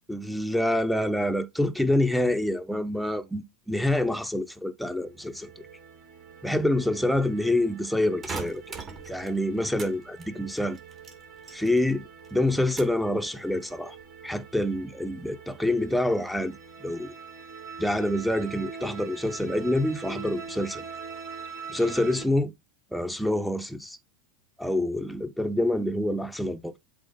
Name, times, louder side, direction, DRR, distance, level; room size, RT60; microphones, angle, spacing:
voice 1, 0.1-5.5 6.4-8.7 9.1-10.8 11.5-14.0 14.2-16.5 16.8-17.1 17.8-20.8 21.7-22.5 22.9-24.0 24.6-26.8, left 1 dB, ahead, 0.9 m, -27 dB
sound 1, 4.9-22.2, right 5 dB, 60° right, 3.6 m, -44 dB
sound 2, 8.2-9.9 10.2-12.0 12.2-13.1 13.5-14.0, right 4 dB, 35° right, 2.3 m, -40 dB
8.0 x 3.4 x 5.3 m
hypercardioid pair, 90°, 0 cm